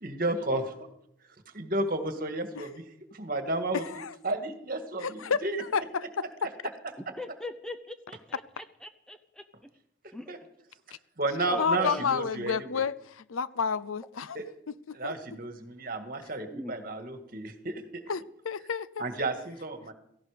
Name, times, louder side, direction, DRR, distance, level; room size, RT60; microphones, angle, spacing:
voice 1, 0.0-0.7 1.5-2.7 3.1-5.6 10.3-10.4 11.2-12.7 14.3-14.5 14.9-18.0 19.0-19.9, right 2 dB, 45° right, 2.0 m, -32 dB
voice 2, 3.7-4.2 5.0-5.4 5.7-6.5 11.6-14.4 14.7-15.1 18.1-19.1, left 6 dB, 85° left, 0.6 m, -31 dB
voice 3, 7.0-9.4 10.1-10.4 11.4-12.0 16.5-16.8, left 2 dB, 5° left, 0.7 m, -41 dB
17.0 x 15.5 x 5.2 m
head